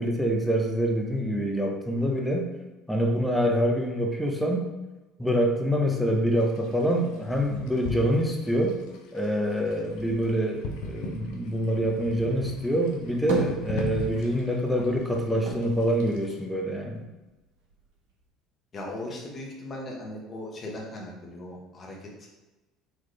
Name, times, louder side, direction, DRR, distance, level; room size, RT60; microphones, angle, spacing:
voice 1, 0.0-2.5 2.9-4.7 5.2-8.8 9.1-17.0, equal, 5° left, 1 dB, 0.8 m, -26 dB
sound 1, 6.3-16.4, left 2 dB, 75° left, 0.7 m, -40 dB
sound 2, 12.8-14.3 14.6-17.0 17.4-18.3, right 2 dB, 75° right, 1.4 m, -36 dB
voice 2, 18.7-22.3, left 1 dB, 35° left, -1 dB, 1.3 m, -38 dB
4.2 x 3.0 x 3.2 m, 1.1 s
supercardioid pair, 85°, 0 cm